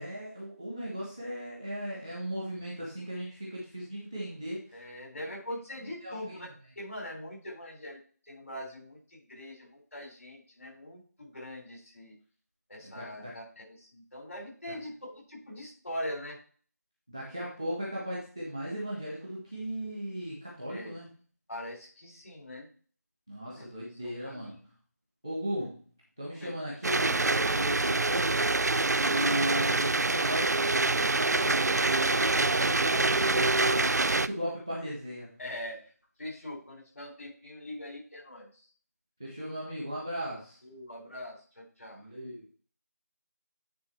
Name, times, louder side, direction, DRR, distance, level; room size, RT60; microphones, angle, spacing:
voice 1, 0.0-4.8 6.0-6.4 12.8-13.4 14.7-14.8 17.1-21.1 23.3-24.6 25.2-25.8 26.2-28.4 29.0-35.3 39.2-40.6 42.0-42.4, equal, 5° left, -5 dB, 0.5 m, -37 dB
voice 2, 4.7-6.5 6.8-8.0 8.3-9.0 9.3-12.2 12.7-16.4 20.7-20.9 21.5-22.7 23.5-23.6 24.0-24.5 26.4-26.5 32.2-32.6 35.4-35.8 36.2-38.5 40.6-42.0, left 1 dB, 55° left, -1 dB, 3.8 m, -42 dB
sound 1, 26.8-34.3, right 3 dB, 75° right, 0.4 m, -26 dB
9.5 x 3.6 x 4.4 m, 0.42 s
figure-of-eight pair, 175°, 9 cm